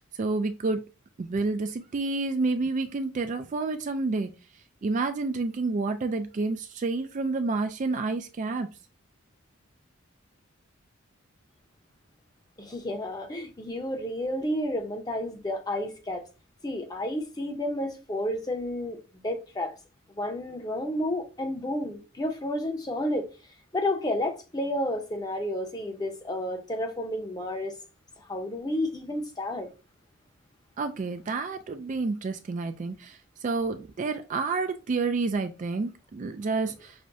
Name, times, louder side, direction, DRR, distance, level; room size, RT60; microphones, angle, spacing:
voice 1, 0.2-0.8 1.2-4.3 4.8-8.7 30.8-36.9, right 3 dB, 35° right, 0.3 m, -29 dB
voice 2, 12.6-16.2 16.6-19.7 20.2-23.3 23.7-27.7 28.3-29.7, left 1 dB, 20° left, 0.7 m, -31 dB
6.1 x 2.1 x 2.5 m
head